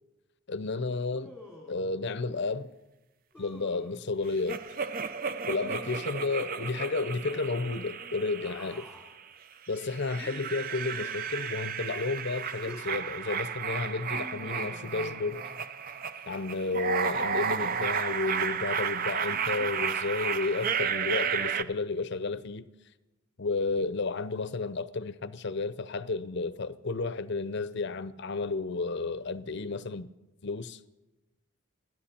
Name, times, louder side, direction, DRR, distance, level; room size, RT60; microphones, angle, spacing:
voice 1, 0.5-1.3 1.7-2.7 3.4-4.7 5.5-8.9 9.7-15.5 16.3-22.7 23.4-30.1 30.4-30.8, left 3 dB, 50° left, 0.6 m, -32 dB
Human voice, 1.1-1.9 3.3-4.0 5.6-6.4 8.0-9.1 10.2-11.7 12.4-12.9 14.1-15.7 17.1-18.3 19.3-20.2, left 1 dB, 5° right, 2.7 m, -49 dB
sound 1, 4.5-9.2 9.7-21.6, right 6 dB, 40° right, 0.5 m, -33 dB
28.5 x 11.0 x 4.4 m
head